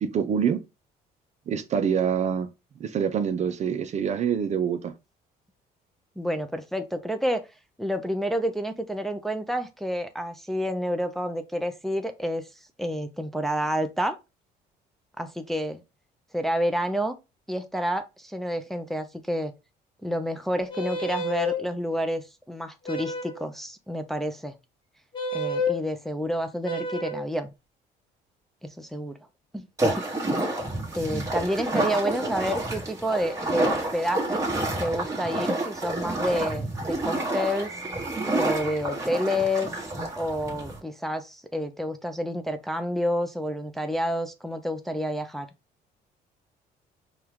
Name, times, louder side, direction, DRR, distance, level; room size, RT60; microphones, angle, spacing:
voice 1, 0.0-0.6 1.5-2.5 2.8-4.9, right 7 dB, 45° right, 0.5 m, -25 dB
voice 2, 6.2-7.4 7.8-12.4 12.8-14.2 15.2-15.8 16.3-17.2 17.5-19.5 20.0-24.6 25.3-27.5 28.8-29.1 29.5-30.2 30.9-34.5 34.8-37.7 38.4-39.7 40.2-45.5, equal, ahead, 0.5 m, -29 dB
sound 1, 20.7-21.6 22.8-23.4 25.1-25.8 26.6-27.3, left 2 dB, 30° left, 0.9 m, -29 dB
sound 2, 29.8-40.8, right 2 dB, 20° right, 1.3 m, -29 dB
4.5 x 2.3 x 3.5 m
cardioid pair, 110°, 17 cm